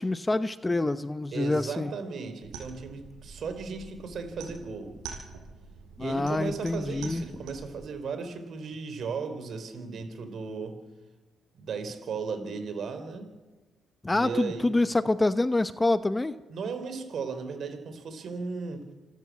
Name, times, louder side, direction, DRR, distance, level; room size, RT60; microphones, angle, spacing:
voice 1, 0.0-1.9 6.0-7.2 14.0-16.4, left 2 dB, 15° left, 13 dB, 0.8 m, -26 dB
voice 2, 1.3-4.9 6.0-10.8 11.5-13.3 14.1-14.8 16.5-18.8, right 5 dB, 60° right, 9 dB, 4.0 m, -36 dB
sound 1, 2.4-7.8, right 5 dB, 90° right, 6.5 m, -46 dB
27.0 x 13.0 x 8.5 m, 1.2 s
cardioid pair, 90°, 0 cm